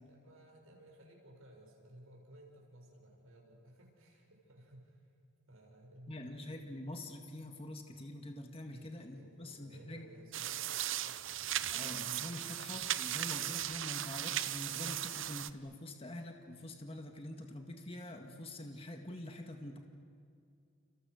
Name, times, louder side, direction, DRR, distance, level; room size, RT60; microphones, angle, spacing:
voice 1, 0.1-5.1 5.5-6.3 8.7-11.2 12.3-12.6, right 1 dB, 80° right, 0 dB, 7.4 m, -58 dB
voice 2, 6.1-10.1 11.7-19.8, left 1 dB, 25° left, 3 dB, 1.9 m, -45 dB
sound 1, 10.3-15.5, right 12 dB, 60° right, 0.8 m, -37 dB
30.0 x 30.0 x 6.6 m, 2.4 s
head